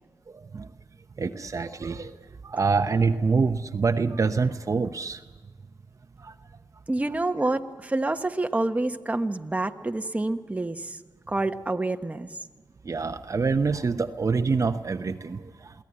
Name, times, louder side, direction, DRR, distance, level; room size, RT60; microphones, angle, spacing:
voice 1, 1.2-2.1 2.4-5.2 6.2-6.3 12.8-15.7, right 4 dB, 50° right, 8 dB, 0.9 m, -25 dB
voice 2, 6.9-11.0 11.3-12.3, right 2 dB, 20° right, 7 dB, 1.1 m, -27 dB
23.0 x 16.5 x 9.8 m, 1.4 s
cardioid pair, 65°, 7 cm